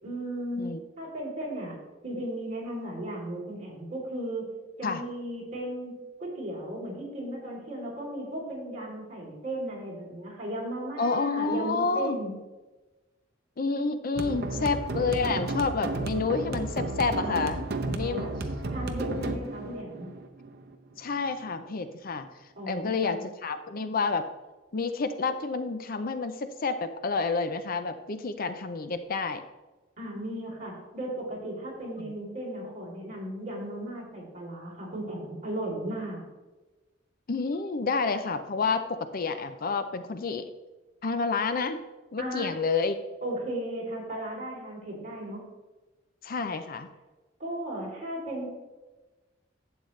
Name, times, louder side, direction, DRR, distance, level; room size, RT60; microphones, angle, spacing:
voice 1, 0.0-1.8 2.0-4.5 4.8-5.9 6.2-12.3 18.0-18.4 18.7-20.1 22.6-23.2 30.0-36.2 42.2-42.5 43.2-45.5 47.4-48.5, right 1 dB, 40° right, -4 dB, 3.5 m, -36 dB
voice 2, 11.0-12.2 13.6-18.3 19.1-19.4 21.0-22.3 22.7-24.3 24.7-29.4 32.0-32.1 37.3-40.5 41.0-41.8 42.1-43.0 46.2-46.9, left 4 dB, 50° left, 10 dB, 0.6 m, -29 dB
sound 1, 14.2-21.1, right 2 dB, 55° right, 0.9 m, -33 dB
11.5 x 8.0 x 3.2 m, 1.2 s
head